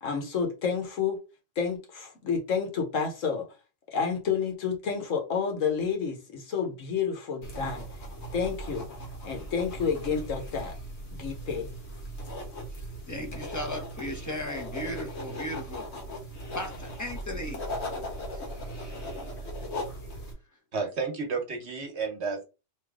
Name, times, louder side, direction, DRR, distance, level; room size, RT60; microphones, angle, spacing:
voice 1, 0.0-1.2 1.6-3.5 3.9-7.9 8.3-8.9 9.2-10.7 11.1-11.7, left 6 dB, 85° left, 1.5 m, -30 dB
sound 1, 7.4-20.3, equal, 60° left, 1.4 m, -38 dB
voice 2, 13.1-15.9 16.5-17.6 18.3-18.5 19.4-19.5, left 1 dB, 15° left, 0.9 m, -36 dB
voice 3, 20.7-22.4, right 4 dB, 60° right, 1.3 m, -31 dB
3.3 x 3.1 x 3.6 m
omnidirectional pair, 1.3 m